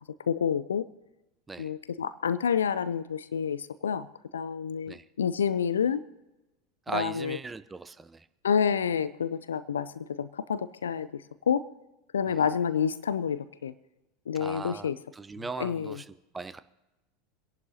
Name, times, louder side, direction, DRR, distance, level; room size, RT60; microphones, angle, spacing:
voice 1, 0.3-0.9 1.6-4.1 4.3-6.0 6.9-7.4 8.4-11.2 11.5-11.6 12.1-13.7 14.3-15.0 15.6-16.0, left 7 dB, 75° left, 16 dB, 0.4 m, -28 dB
voice 2, 6.9-8.3 12.3-12.5 14.3-16.6, right 4 dB, 15° right, 13 dB, 0.7 m, -39 dB
26.0 x 11.0 x 2.8 m, 0.99 s
figure-of-eight pair, 80°, 0 cm